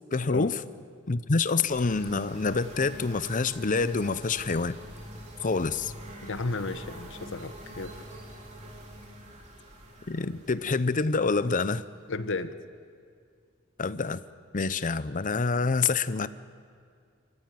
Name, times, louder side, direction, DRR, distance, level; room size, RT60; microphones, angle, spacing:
voice 1, 0.1-0.6 1.1-4.8 5.4-5.9 10.1-11.8 13.8-14.2 14.5-16.3, left 4 dB, 40° left, 15 dB, 0.7 m, -27 dB
sound 1, 1.7-12.3, equal, 35° right, 3.4 m, -45 dB
voice 2, 6.2-7.9 12.1-12.5, left 3 dB, 65° left, 12 dB, 1.0 m, -33 dB
27.0 x 15.5 x 9.2 m, 2.2 s
head